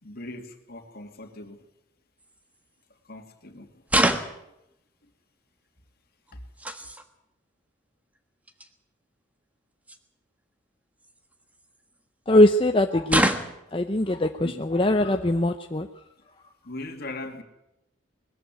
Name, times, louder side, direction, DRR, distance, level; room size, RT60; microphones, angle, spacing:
voice 1, 0.0-1.6 3.0-3.8 6.3-6.4 6.8-6.9 14.4-14.6 16.6-17.4, left 2 dB, 50° left, 6 dB, 2.6 m, -39 dB
sound 1, 2.2-2.4 3.9-4.5 6.3-7.0 8.2-8.3 8.5-8.7 9.9-10.0 11.0-12.0 13.1-13.7, right 1 dB, 5° right, 1.4 m, -26 dB
voice 2, 12.3-13.3 13.7-15.9, left 1 dB, 25° left, 6 dB, 0.7 m, -21 dB
21.0 x 14.5 x 9.2 m, 0.84 s
head